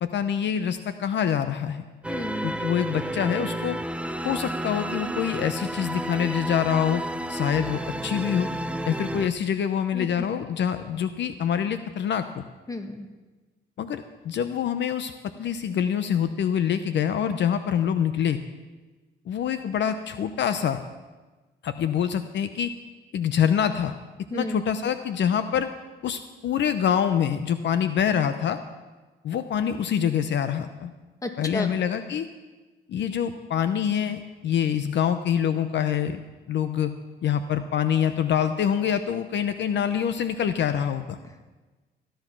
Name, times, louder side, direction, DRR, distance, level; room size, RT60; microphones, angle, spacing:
voice 1, 0.0-1.8 2.4-3.8 4.2-7.0 7.3-8.5 8.9-12.4 13.8-15.1 15.4-18.4 19.3-20.8 21.6-22.7 23.1-23.9 24.3-25.7 26.0-28.6 29.2-30.9 31.4-32.3 32.9-36.2 36.5-36.9 37.2-41.2, left 8 dB, 65° left, 10 dB, 0.8 m, -25 dB
sound 1, 2.0-9.3, right 1 dB, 5° right, 0.7 m, -31 dB
voice 2, 2.1-2.6 9.9-10.3 12.7-13.1 24.3-24.6 31.2-31.8, left 2 dB, 15° left, 6 dB, 1.8 m, -32 dB
15.0 x 10.5 x 6.0 m, 1.2 s
cardioid pair, 90°, 20 cm